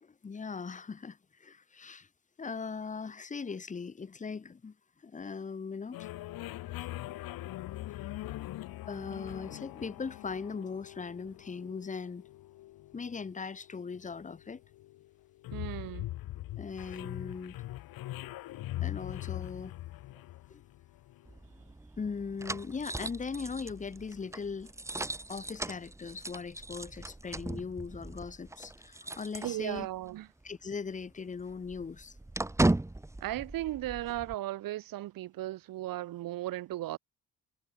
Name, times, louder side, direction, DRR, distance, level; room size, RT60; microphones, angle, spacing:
voice 1, 0.0-2.1 2.4-4.7 5.0-6.0 8.0-8.3 8.9-12.2 12.9-14.6 16.6-17.6 18.8-19.8 20.5-20.6 22.0-24.7 25.3-29.9 30.4-32.2, left 5 dB, 20° left, 3.0 m, -39 dB
sound 1, 5.9-21.3, left 16 dB, 90° left, 4.1 m, -42 dB
voice 2, 15.5-16.1 29.4-30.3 33.2-37.0, right 15 dB, 75° right, 3.4 m, -36 dB
sound 2, 21.2-30.1 30.4-30.5 30.9-34.3, right 2 dB, 10° right, 6.6 m, -37 dB
cardioid pair, 175°, 34 cm